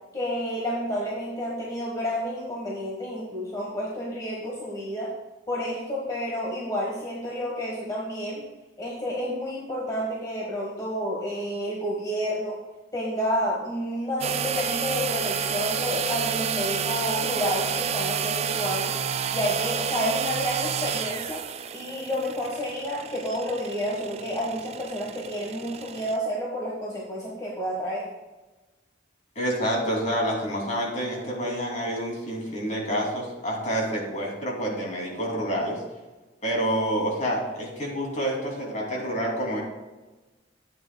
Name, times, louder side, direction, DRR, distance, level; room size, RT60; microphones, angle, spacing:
voice 1, 0.1-5.1 5.5-8.4 8.8-12.6 12.9-18.9 19.3-21.4 21.7-28.1, equal, 20° left, -4 dB, 1.3 m, -30 dB
sound 1, 14.2-26.2, right 7 dB, 35° right, 0.3 m, -30 dB
voice 2, 29.4-35.8 36.4-39.6, equal, 40° left, -2 dB, 2.6 m, -28 dB
12.5 x 8.8 x 2.2 m, 1.2 s
head